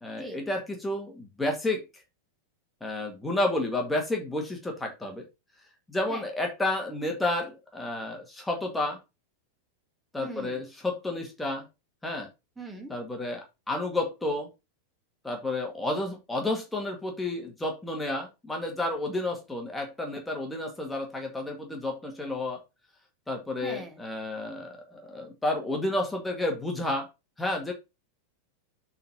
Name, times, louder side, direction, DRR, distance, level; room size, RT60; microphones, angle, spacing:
voice 1, 0.0-1.8 2.8-5.2 5.9-9.0 10.1-11.7 12.0-12.3 12.9-14.5 15.2-22.6 23.3-27.1 27.4-27.7, left 2 dB, 5° left, 1 dB, 1.9 m, -31 dB
voice 2, 10.2-10.6 12.6-12.9 23.6-24.0, right 2 dB, 10° right, 2 dB, 1.9 m, -40 dB
7.6 x 4.2 x 4.3 m, 0.24 s
figure-of-eight pair, 90°, 0 cm